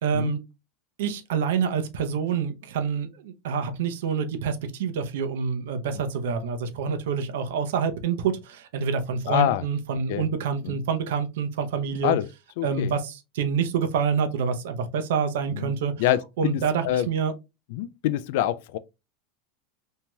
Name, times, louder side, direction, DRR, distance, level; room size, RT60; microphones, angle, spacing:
voice 1, 0.0-0.4 1.0-12.2 12.6-15.9 16.4-17.3, right 6 dB, 80° right, 0.6 m, -27 dB
voice 2, 9.3-9.6 10.1-10.3 10.6-10.8 12.0-12.3 12.6-12.9 15.5-15.7 16.0-17.1 17.7-18.8, left 13 dB, 65° left, 0.3 m, -26 dB
3.0 x 2.7 x 2.2 m
supercardioid pair, 145°, 0 cm